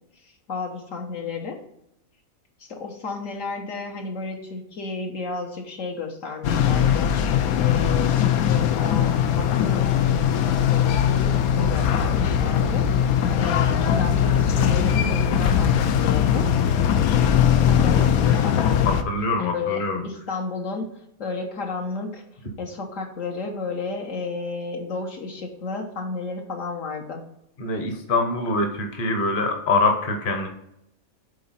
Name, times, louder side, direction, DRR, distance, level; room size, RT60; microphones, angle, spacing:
voice 1, 0.2-1.6 2.6-7.1 7.5-9.9 10.4-16.5 17.6-19.0 19.4-22.2 22.6-27.2, left 4 dB, 65° left, 1 dB, 1.4 m, -32 dB
sound 1, 6.4-19.0, left 9 dB, 85° left, 1.1 m, -20 dB
voice 2, 18.9-20.0 27.6-30.5, left 2 dB, 40° left, 4 dB, 1.1 m, -24 dB
8.4 x 3.9 x 4.2 m, 0.78 s
omnidirectional pair, 1.5 m